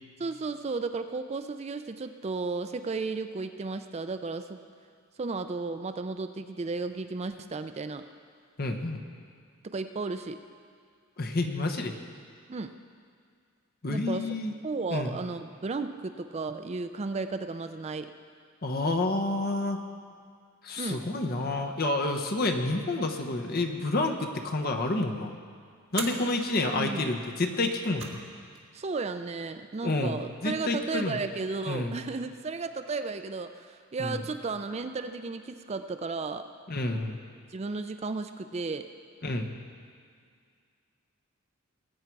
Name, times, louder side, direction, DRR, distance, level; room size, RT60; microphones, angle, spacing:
voice 1, 0.2-4.6 5.2-8.1 9.6-10.4 12.5-12.7 13.9-14.3 14.6-18.1 20.8-21.0 26.7-27.1 28.7-36.5 37.5-38.9, right 3 dB, 30° right, 9 dB, 0.4 m, -34 dB
voice 2, 8.6-9.0 11.2-11.9 13.8-14.5 14.9-15.2 18.6-19.8 20.6-25.3 25.9-28.2 29.8-31.2 31.7-32.0 34.0-34.2 36.7-37.2 39.2-39.6, left 2 dB, 45° left, 3 dB, 1.0 m, -29 dB
sound 1, 24.4-24.8 25.9-26.3 27.6-28.3 28.6-28.7 29.7-30.3, right 6 dB, 60° right, 1.4 m, -40 dB
20.0 x 8.6 x 4.6 m, 2.2 s
head